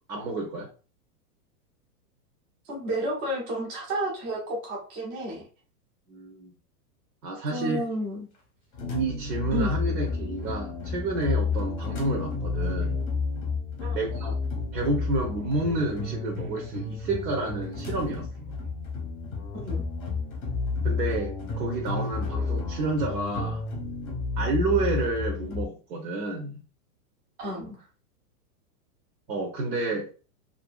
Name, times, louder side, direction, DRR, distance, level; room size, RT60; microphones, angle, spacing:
voice 1, 0.1-0.7 6.1-6.5 7.2-7.8 8.9-13.0 13.9-14.3 14.7-18.6 20.8-23.6 24.4-26.6 29.3-30.1, right 2 dB, 85° right, 0 dB, 0.9 m, -30 dB
voice 2, 2.7-5.4 7.5-8.3 9.5-9.8 13.8-14.0 19.5-19.8 27.4-27.8, right 1 dB, 25° right, -3 dB, 0.5 m, -31 dB
sound 1, 8.7-25.7, left 4 dB, 25° left, 0.6 m, -31 dB
2.6 x 2.5 x 2.3 m, 0.36 s
supercardioid pair, 160°, 48 cm